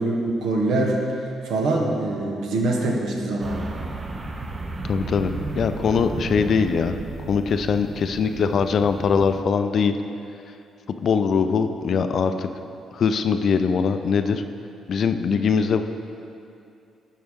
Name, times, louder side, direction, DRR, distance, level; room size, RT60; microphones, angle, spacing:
voice 1, 0.0-3.9, right 2 dB, 80° right, 0 dB, 1.1 m, -24 dB
sound 1, 3.4-9.4, right 2 dB, 35° right, 0.6 m, -33 dB
voice 2, 4.9-6.9 7.3-10.0 11.0-12.5 12.9-14.4 14.9-15.8, left 6 dB, 55° left, 9 dB, 0.4 m, -22 dB
11.5 x 4.6 x 3.6 m, 2.6 s
cardioid pair, 90°, 0 cm